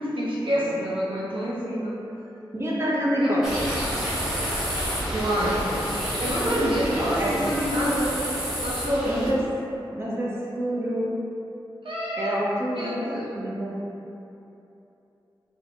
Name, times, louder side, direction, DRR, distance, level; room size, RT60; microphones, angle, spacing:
voice 1, 0.0-2.0 3.2-3.4 5.1-5.7 6.2-8.2 8.6-9.3 11.8-12.4 12.7-13.3, equal, 75° right, -7 dB, 0.6 m, -27 dB
voice 2, 2.5-3.4 7.0-7.3 9.1-9.4 9.9-11.1 12.2-13.7, equal, 30° right, -6 dB, 0.7 m, -27 dB
sound 1, 3.4-9.3, equal, 5° right, 1.2 m, -29 dB
3.3 x 2.1 x 3.7 m, 3.0 s
cardioid pair, 45°, 9 cm